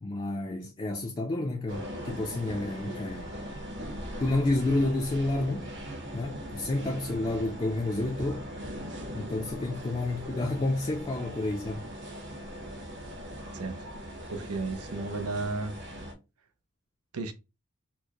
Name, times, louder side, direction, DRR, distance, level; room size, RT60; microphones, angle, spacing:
voice 1, 0.0-3.3 4.2-5.7 6.1-8.5 9.1-11.8, left 2 dB, 25° left, 0.4 m, -30 dB
sound 1, 1.7-16.1, equal, 55° right, 0.9 m, -40 dB
voice 2, 14.3-15.7 17.1-17.3, right 3 dB, 90° right, 0.6 m, -33 dB
4.4 x 2.1 x 2.9 m
head